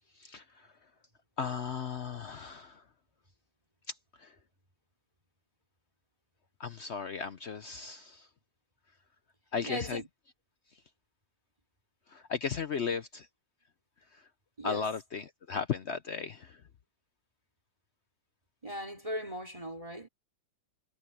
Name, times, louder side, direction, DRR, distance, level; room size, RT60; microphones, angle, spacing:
voice 1, 1.4-2.8 6.6-8.2 9.5-10.0 12.1-13.3 14.6-16.5, left 6 dB, 55° left, 0.7 m, -35 dB
voice 2, 9.6-10.1 12.9-13.0 14.6-14.9 18.6-20.1, equal, 20° right, 3.3 m, -38 dB
omnidirectional pair, 1.9 m